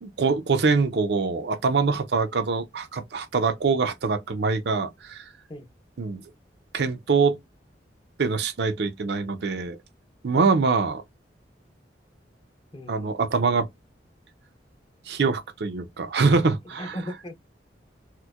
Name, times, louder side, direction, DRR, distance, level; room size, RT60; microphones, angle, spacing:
voice 1, 0.0-5.2 6.0-6.2 6.7-7.4 8.2-9.8 10.2-11.0 12.9-13.7 15.1-17.0, right 4 dB, 65° right, 0.5 m, -24 dB
voice 2, 12.7-13.1 16.7-17.4, equal, 25° left, 0.7 m, -37 dB
4.3 x 2.1 x 2.3 m
head